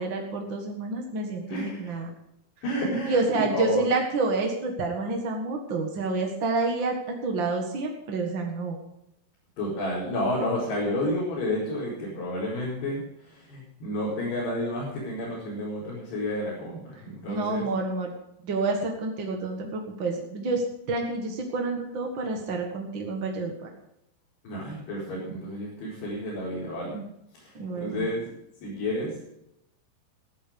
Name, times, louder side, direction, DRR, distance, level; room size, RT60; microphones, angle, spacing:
voice 1, 0.0-2.1 3.1-7.0 7.2-8.8 17.3-18.1 18.4-23.7 27.5-28.1, right 3 dB, 55° right, 1 dB, 1.3 m, -28 dB
voice 2, 1.5-2.0 2.6-3.9 9.6-17.7 24.4-27.0 27.3-28.3 28.6-29.1, left 1 dB, 70° left, -8 dB, 6.9 m, -31 dB
15.0 x 11.5 x 5.2 m, 0.81 s
omnidirectional pair, 4.9 m